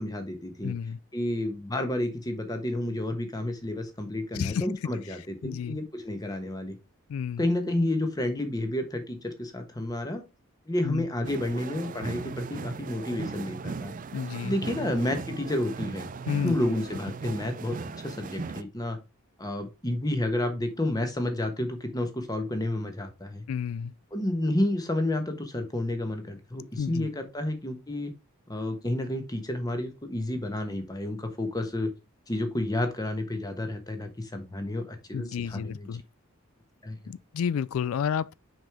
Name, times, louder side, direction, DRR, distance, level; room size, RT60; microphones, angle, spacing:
voice 1, 0.0-0.7 1.1-6.7 7.4-10.2 10.7-13.9 14.4-16.1 16.4-19.0 19.4-23.4 24.1-28.1 28.5-31.9 32.3-35.9 36.8-37.0, left 1 dB, 20° left, 1.2 m, -30 dB
voice 2, 0.6-1.0 4.3-4.7 5.4-5.8 7.1-7.5 10.8-11.1 14.1-14.6 16.3-16.6 23.5-23.9 26.8-27.1 35.1-36.0 37.1-38.4, left 7 dB, 75° left, 0.3 m, -31 dB
sound 1, 11.2-18.6, right 4 dB, 40° right, 0.4 m, -38 dB
6.2 x 5.1 x 3.6 m
head